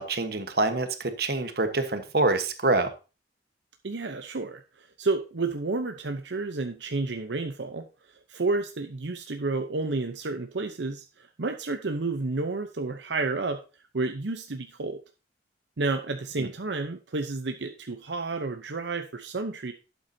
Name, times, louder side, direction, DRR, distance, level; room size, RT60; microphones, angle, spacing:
voice 1, 0.0-2.9 16.4-16.5, right 2 dB, 60° right, 8 dB, 1.3 m, -26 dB
voice 2, 3.8-13.6 13.9-15.0 15.8-19.7, right 3 dB, 85° right, 6 dB, 0.8 m, -31 dB
12.0 x 8.1 x 2.8 m, 0.32 s
head